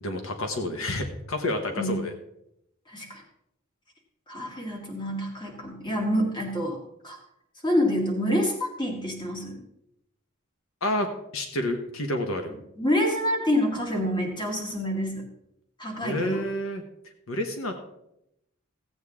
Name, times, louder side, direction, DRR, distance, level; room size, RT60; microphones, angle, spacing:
voice 1, 0.0-2.1 10.8-12.5 16.0-16.8 17.3-17.8, left 1 dB, 80° left, 5 dB, 1.2 m, -29 dB
voice 2, 2.9-3.2 4.3-6.8 7.0-7.2 7.6-9.6 12.8-15.3 15.8-16.4, equal, 20° left, 1 dB, 2.0 m, -27 dB
15.5 x 8.3 x 3.6 m, 0.81 s
head